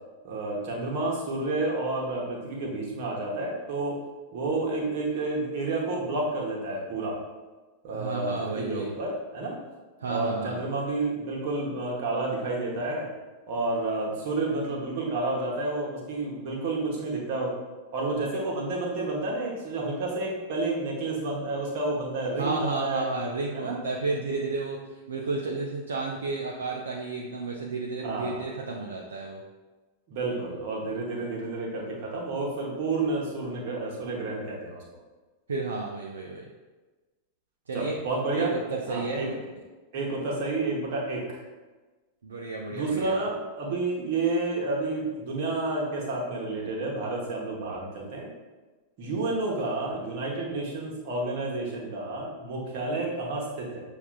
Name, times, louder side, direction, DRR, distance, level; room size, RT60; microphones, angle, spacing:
voice 1, 0.2-4.0 4.3-7.1 7.8-9.6 10.0-13.1 13.5-17.5 17.9-23.1 23.5-23.8 28.0-28.4 30.1-34.8 37.7-38.6 38.9-39.3 39.9-41.4 42.7-48.3 49.0-53.8, right 2 dB, 50° right, -2 dB, 1.0 m, -30 dB
voice 2, 7.9-8.9 10.0-10.6 22.4-29.4 35.5-36.5 37.7-38.0 38.3-39.4 42.2-43.2, right 3 dB, 70° right, 0 dB, 0.4 m, -32 dB
6.7 x 2.4 x 2.3 m, 1.3 s
figure-of-eight pair, 90°, 0 cm